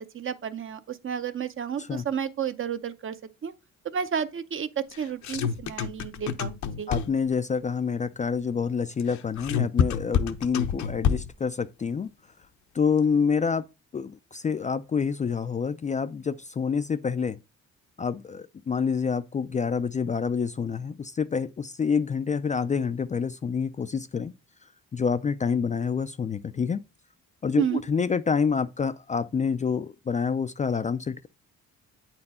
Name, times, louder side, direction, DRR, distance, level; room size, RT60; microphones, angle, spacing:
voice 1, 0.0-3.2 3.4-3.5 3.9-6.9 27.6-27.8, right 7 dB, 45° right, 0.7 m, -31 dB
sound 1, 4.9-7.3 9.0-11.5, left 7 dB, 70° left, 0.8 m, -27 dB
voice 2, 6.9-12.1 12.7-13.7 13.9-17.4 18.0-24.3 24.9-26.8 27.4-31.3, left 6 dB, 25° left, 0.4 m, -27 dB
8.5 x 4.4 x 4.2 m
cardioid pair, 90°, 30 cm